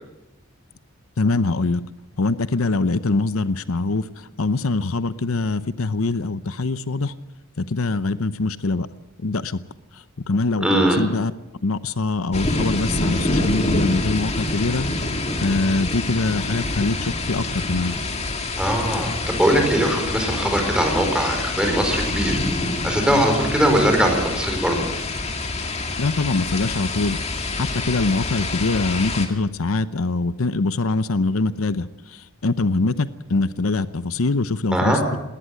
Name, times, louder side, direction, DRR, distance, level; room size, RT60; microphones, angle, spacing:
voice 1, 1.2-1.8 2.2-4.0 4.4-7.1 7.6-8.9 9.2-9.6 10.3-11.3 11.6-14.9 15.4-17.9 26.0-27.2 27.5-31.9 32.4-35.2, left 3 dB, 85° left, 14 dB, 0.8 m, -23 dB
voice 2, 10.6-11.0 18.6-22.4 22.8-24.9 34.7-35.0, right 1 dB, 5° right, 3 dB, 4.8 m, -20 dB
sound 1, 12.3-29.3, left 2 dB, 30° left, 2.2 m, -26 dB
19.5 x 18.5 x 7.8 m, 0.96 s
head